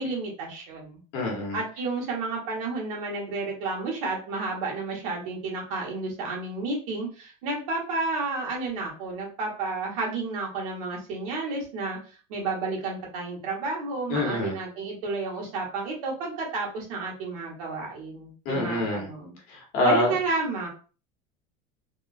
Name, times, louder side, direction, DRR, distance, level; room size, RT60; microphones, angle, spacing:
voice 1, 0.0-1.0 1.5-12.0 12.3-19.4 19.8-20.7, right 3 dB, 85° right, -1 dB, 1.5 m, -31 dB
voice 2, 1.1-1.6 14.1-14.6 18.4-19.1 19.5-20.1, left 2 dB, 50° left, 0 dB, 1.2 m, -26 dB
3.5 x 2.3 x 2.5 m, 0.37 s
cardioid pair, 180°, 18 cm